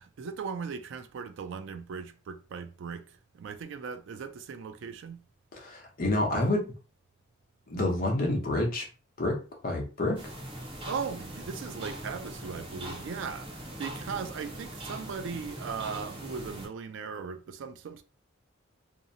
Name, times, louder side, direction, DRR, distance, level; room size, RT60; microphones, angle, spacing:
voice 1, 0.0-5.2 10.8-18.0, right 6 dB, 60° right, 0.3 m, -38 dB
voice 2, 5.5-6.7 7.7-8.9 9.2-9.4 9.6-10.2, left 2 dB, 45° left, 0.7 m, -28 dB
sound 1, 10.2-16.7, right 1 dB, 25° right, 0.7 m, -41 dB
2.6 x 2.0 x 2.6 m
head